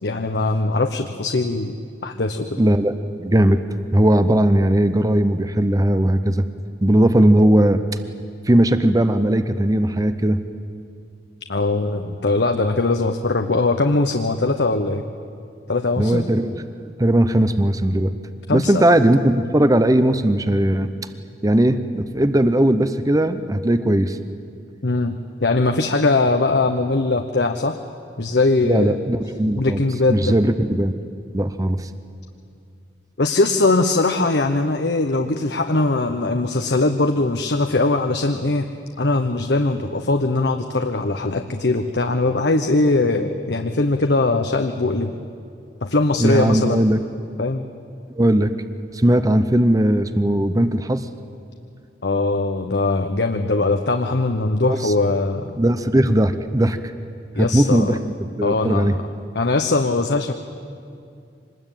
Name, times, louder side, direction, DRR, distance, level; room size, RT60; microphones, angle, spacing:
voice 1, 0.0-1.8 2.0-2.6 11.5-15.0 15.7-16.3 18.5-18.8 24.8-25.1 25.4-27.8 28.2-29.0 29.6-30.3 33.2-38.7 39.0-45.1 45.8-46.9 47.4-47.7 52.0-55.5 57.3-58.0 58.4-59.0 59.3-60.3, left 2 dB, 70° left, 6 dB, 1.0 m, -20 dB
voice 2, 2.6-3.6 3.9-6.4 6.8-7.8 8.5-10.4 16.0-18.1 18.5-20.9 21.4-24.2 28.6-29.8 30.1-30.9 31.3-31.9 46.2-47.0 48.2-48.5 48.9-51.0 54.7-54.9 55.6-56.8 57.4-59.0, right 1 dB, 20° right, 11 dB, 0.7 m, -18 dB
25.0 x 20.5 x 9.1 m, 2.4 s
head